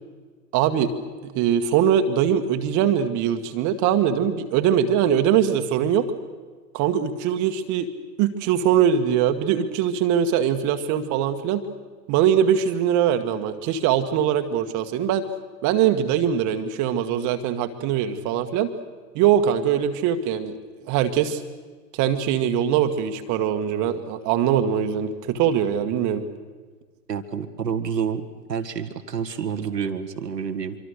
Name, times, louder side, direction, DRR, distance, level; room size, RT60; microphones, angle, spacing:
voice 1, 0.5-0.9 1.2-6.1 6.7-7.9 8.2-11.6 12.1-15.2 15.6-18.7 19.1-20.6 20.8-21.4 21.9-26.2, right 9 dB, 35° right, 7 dB, 1.7 m, -22 dB
voice 2, 27.1-30.8, right 7 dB, 90° right, 9 dB, 1.6 m, -28 dB
25.0 x 25.0 x 6.6 m, 1.5 s
hypercardioid pair, 110°, 48 cm